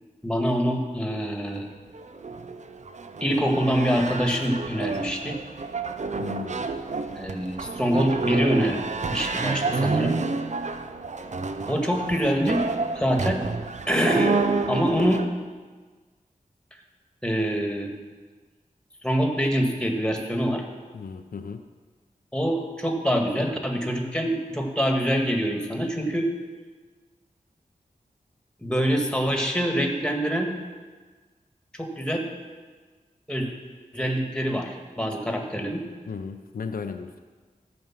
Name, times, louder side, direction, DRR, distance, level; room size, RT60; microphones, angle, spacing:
voice 1, 0.2-1.7 3.2-5.4 7.2-10.2 11.7-12.6 12.9-13.4 13.9-14.3 14.7-15.3 17.2-17.9 19.0-20.6 22.3-26.3 28.6-30.6 31.7-32.3 33.3-33.5 33.9-35.8, equal, 5° left, 2 dB, 1.8 m, -25 dB
sound 1, 1.7-15.3, right 3 dB, 55° right, 0.7 m, -29 dB
voice 2, 6.2-6.7 20.9-21.7 36.1-37.2, left 5 dB, 85° left, 6 dB, 0.6 m, -35 dB
14.0 x 5.3 x 7.4 m, 1.4 s
wide cardioid pair, 75°, 14 cm